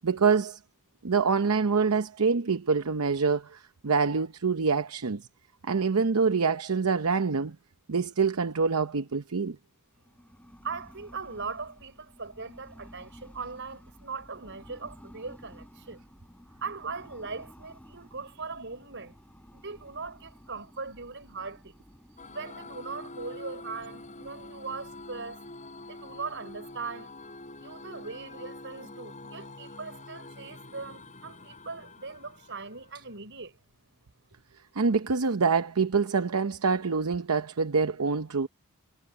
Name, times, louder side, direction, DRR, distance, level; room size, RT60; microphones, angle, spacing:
voice 1, 0.0-0.6 1.0-5.2 5.6-7.6 7.9-9.6 34.8-38.5, right 5 dB, 80° right, 0.8 m, -26 dB
sound 1, 9.9-28.6, equal, 5° left, 7.1 m, -54 dB
voice 2, 10.6-16.0 16.6-19.2 19.5-21.8 22.3-25.5 25.9-27.1 27.6-33.6, right 4 dB, 55° right, 6.0 m, -40 dB
sound 2, 22.2-33.1, left 2 dB, 35° left, 6.2 m, -46 dB
head